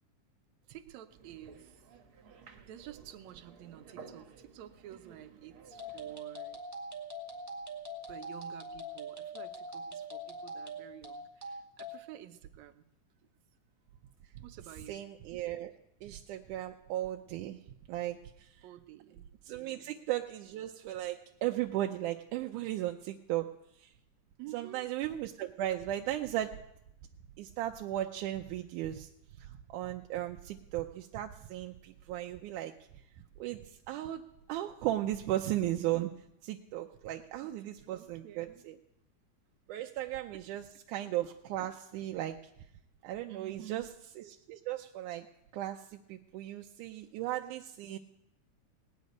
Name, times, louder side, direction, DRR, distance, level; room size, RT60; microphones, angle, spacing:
voice 1, 0.7-1.8 2.6-6.6 8.1-12.8 14.4-15.0 18.6-19.3 19.6-20.0 24.4-24.9 37.6-38.6 39.7-39.9 40.3-40.4 43.3-43.9 47.8-48.0, right 12 dB, 75° right, 9 dB, 2.0 m, -51 dB
sound 1, 1.1-6.2, right 5 dB, 55° right, 1.9 m, -55 dB
sound 2, 5.7-12.0, right 1 dB, 5° right, 1.6 m, -42 dB
voice 2, 14.9-15.7 16.0-17.6 17.9-18.5 19.5-23.5 23.8-23.9 24.5-26.5 27.4-29.1 29.4-32.7 33.4-33.6 33.9-34.2 34.5-38.8 39.7-42.4 43.0-43.9 44.2-45.3 45.5-48.0, right 13 dB, 90° right, 4 dB, 2.2 m, -36 dB
19.0 x 6.6 x 9.4 m, 0.81 s
omnidirectional pair, 3.5 m